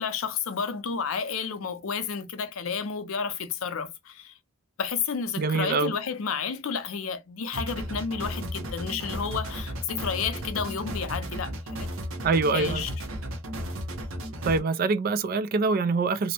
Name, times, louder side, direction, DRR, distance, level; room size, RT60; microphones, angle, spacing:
voice 1, 0.0-4.3 4.8-11.9 12.5-12.9, left 6 dB, 75° left, 0.5 m, -31 dB
voice 2, 5.4-5.9 12.2-12.8 14.4-16.3, right 4 dB, 45° right, 0.3 m, -24 dB
sound 1, 7.5-14.6, equal, 70° right, 0.7 m, -34 dB
2.6 x 2.0 x 2.8 m
head